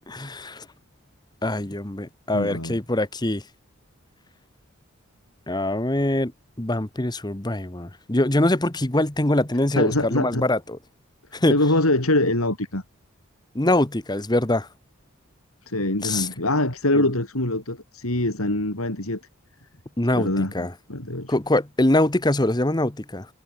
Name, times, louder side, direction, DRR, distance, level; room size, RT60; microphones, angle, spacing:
voice 1, 0.1-0.7 1.4-3.4 5.5-6.3 6.6-10.8 11.3-11.6 13.5-14.7 16.0-16.3 16.9-17.1 20.0-20.7 21.3-23.3, left 1 dB, 20° left, 1.2 m, -23 dB
voice 2, 2.3-2.7 9.8-10.5 11.5-12.8 15.7-19.2 20.2-21.3, left 1 dB, 90° left, 5.6 m, -24 dB
head